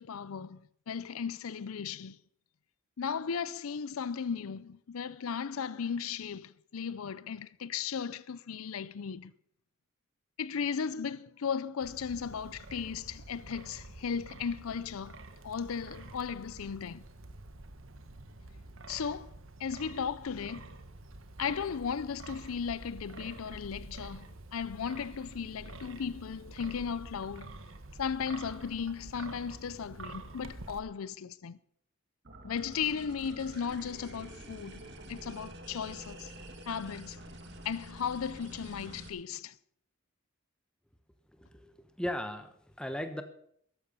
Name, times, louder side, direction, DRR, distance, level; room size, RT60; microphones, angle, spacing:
voice 1, 0.0-2.2 3.0-9.3 10.4-17.0 18.9-20.7 21.4-24.3 24.5-27.5 28.0-31.6 32.4-34.8 35.1-36.3 36.7-37.2 37.6-39.6, left 6 dB, 85° left, 0.5 m, -36 dB
Wind, 11.8-30.8, right 2 dB, 70° right, 1.3 m, -48 dB
sound 1, 32.2-39.1, right 1 dB, 55° right, 2.1 m, -48 dB
voice 2, 41.3-43.2, left 1 dB, 5° left, 1.1 m, -37 dB
14.0 x 11.5 x 5.5 m
head